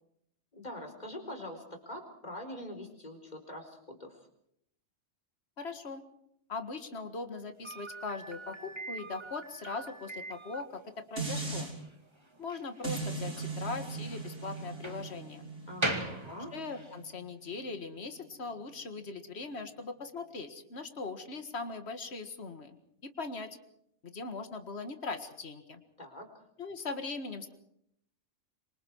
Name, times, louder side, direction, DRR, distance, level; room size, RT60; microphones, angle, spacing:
voice 1, 0.5-4.2 15.7-16.5 26.0-26.4, left 1 dB, 35° left, 4 dB, 4.5 m, -44 dB
voice 2, 5.6-6.0 6.5-10.8 11.1-11.7 12.4-15.4 16.3-22.8 23.0-23.5 24.0-25.8 26.6-27.5, left 4 dB, 60° left, 7 dB, 2.1 m, -40 dB
Slam, 7.6-17.0, right 1 dB, 20° right, 2.4 m, -41 dB
sound 1, 11.2-11.7 12.8-18.0 18.4-18.5, right 3 dB, 80° right, 5.9 m, -39 dB
26.5 x 25.5 x 4.7 m, 0.73 s
omnidirectional pair, 1.2 m